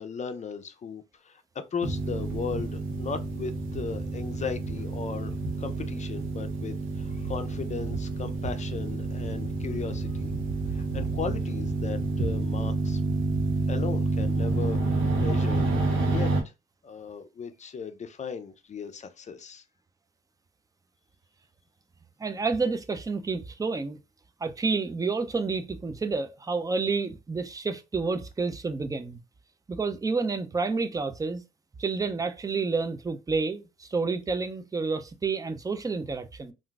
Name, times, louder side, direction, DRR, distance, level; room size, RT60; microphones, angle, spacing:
voice 1, 0.0-10.3 10.7-13.0 13.7-15.7 16.1-16.5 16.8-19.6, left 5 dB, 35° left, 0.5 m, -37 dB
sound 1, 1.8-16.4, right 3 dB, 90° right, 0.9 m, -29 dB
voice 2, 22.2-24.0 24.4-29.2 29.7-31.4 31.8-36.5, right 4 dB, 15° right, 0.4 m, -29 dB
3.6 x 2.5 x 2.3 m
cardioid pair, 90°, 20 cm